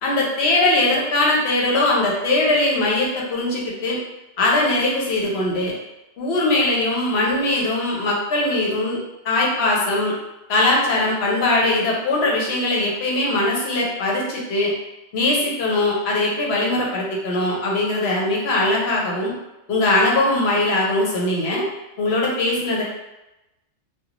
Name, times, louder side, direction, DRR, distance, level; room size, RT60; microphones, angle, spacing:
voice 1, 0.0-4.0 4.4-5.7 6.2-9.0 9.2-10.1 10.5-14.7 15.1-19.3 19.7-21.7 22.0-22.8, left 2 dB, 65° left, -3 dB, 0.9 m, -20 dB
3.1 x 2.3 x 2.4 m, 0.97 s
omnidirectional pair, 1.3 m